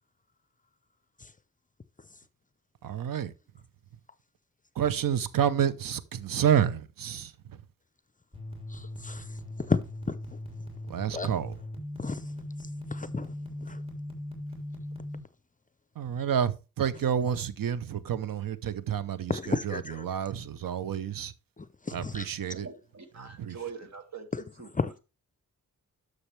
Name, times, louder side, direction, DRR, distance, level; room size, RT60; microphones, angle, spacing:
voice 1, 2.8-3.3 4.8-7.3 10.9-11.5 16.0-21.3 21.9-22.7 23.4-23.5, right 9 dB, 90° right, 0.8 m, -29 dB
sound 1, 8.3-15.2, left 1 dB, 15° right, 3.2 m, -39 dB
voice 2, 8.7-9.2 9.6-9.8 10.1-10.4 11.1-11.3 12.0-12.2 12.9-13.3 13.6-13.8 19.3-20.1 21.6-22.3 24.7-24.9, left 3 dB, 25° left, 0.6 m, -32 dB
voice 3, 22.4-24.3 24.6-24.7, right 6 dB, 55° right, 2.2 m, -43 dB
11.5 x 6.6 x 3.3 m
wide cardioid pair, 100°, 33 cm